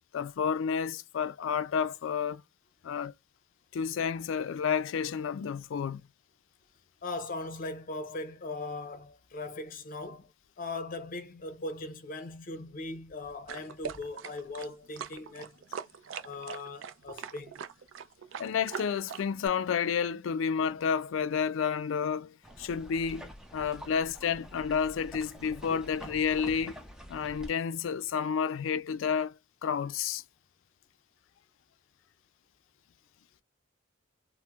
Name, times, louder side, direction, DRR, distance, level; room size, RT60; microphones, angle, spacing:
voice 1, 0.1-2.4 2.8-3.1 3.7-6.0 18.4-26.8 27.1-30.2, left 6 dB, 80° left, 0.3 m, -30 dB
voice 2, 7.0-10.3 10.6-15.5 16.2-17.5, left 2 dB, 45° left, 0.7 m, -39 dB
sound 1, 13.5-19.5, right 7 dB, 80° right, 0.4 m, -41 dB
sound 2, 22.4-27.5, equal, 5° right, 0.6 m, -47 dB
4.2 x 2.1 x 2.3 m
head